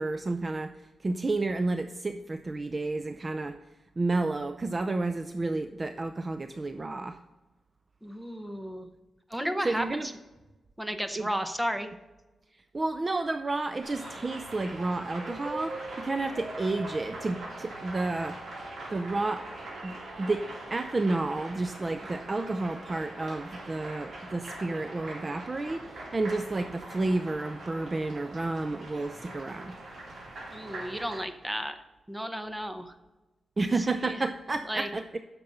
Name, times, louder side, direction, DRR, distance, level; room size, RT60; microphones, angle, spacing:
voice 1, 0.0-3.6 4.0-7.2 9.6-10.1 11.1-11.3 12.7-18.4 18.9-19.4 19.8-29.8 33.6-35.2, right 2 dB, 25° right, 9 dB, 0.4 m, -31 dB
voice 2, 8.0-8.9 9.3-10.0 10.8-11.9 30.5-31.8 32.1-32.9 34.1-34.2 34.7-34.9, equal, 5° right, 8 dB, 0.8 m, -33 dB
sound 1, 13.8-31.2, right 2 dB, 70° right, 3.8 m, -42 dB
10.0 x 6.7 x 5.3 m, 1.1 s
wide cardioid pair, 150°, 0 cm